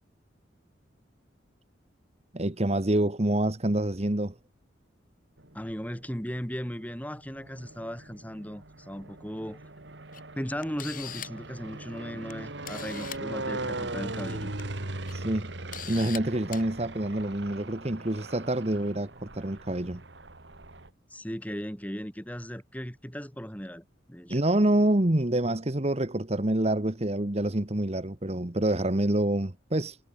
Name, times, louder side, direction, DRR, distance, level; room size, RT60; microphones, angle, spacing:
voice 1, 2.3-4.3 15.1-15.5 15.9-20.0 24.3-30.0, right 1 dB, 35° right, 1.3 m, -27 dB
sound 1, 5.4-6.1 6.9-20.9, right 2 dB, 70° right, 2.5 m, -40 dB
voice 2, 5.5-9.6 10.4-14.5 21.1-24.4, equal, 10° left, 6.1 m, -37 dB
Camera, 10.1-10.2 10.6-11.5 12.3-12.4 12.6-13.2 14.4-14.6 15.1-15.2 15.7-16.2 16.5-16.6, left 10 dB, 45° left, 4.8 m, -40 dB
head